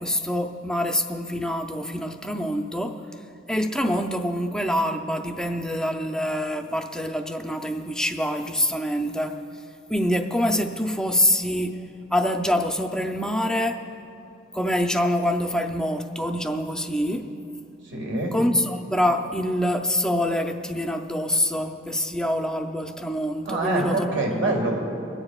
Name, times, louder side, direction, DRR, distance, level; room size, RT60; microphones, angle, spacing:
voice 1, 0.0-3.0 3.5-9.4 9.9-11.8 12.1-13.8 14.5-17.3 18.3-24.1 24.4-24.5, equal, 5° left, 5 dB, 0.5 m, -25 dB
voice 2, 17.8-18.3 23.5-24.8, right 2 dB, 65° right, -1 dB, 1.9 m, -25 dB
28.5 x 9.8 x 2.4 m, 2.8 s
head